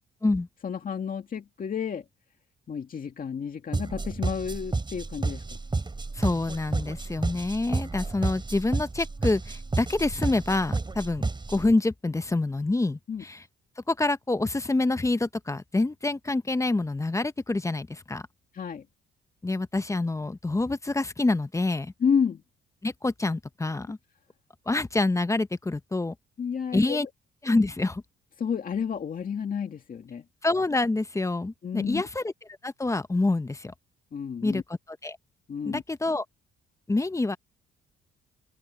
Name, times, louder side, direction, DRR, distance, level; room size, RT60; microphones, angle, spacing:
voice 1, 0.6-2.1 2.7-5.6 13.1-13.2 18.5-18.9 22.0-22.4 26.4-27.0 28.4-30.2 31.6-32.0 34.1-34.6 35.5-35.8, left 7 dB, 45° left, 2.1 m, -30 dB
sound 1, 3.7-11.7, right 3 dB, 25° right, 5.1 m, -31 dB
voice 2, 6.1-13.4 13.9-18.2 19.4-21.9 22.8-24.0 24.7-26.1 26.7-27.1 27.4-28.0 30.4-32.3 32.6-33.7 34.4-34.6 34.9-35.2 35.7-36.2 36.9-37.4, left 2 dB, 15° left, 0.8 m, -27 dB
open air
cardioid pair, 90°, 20 cm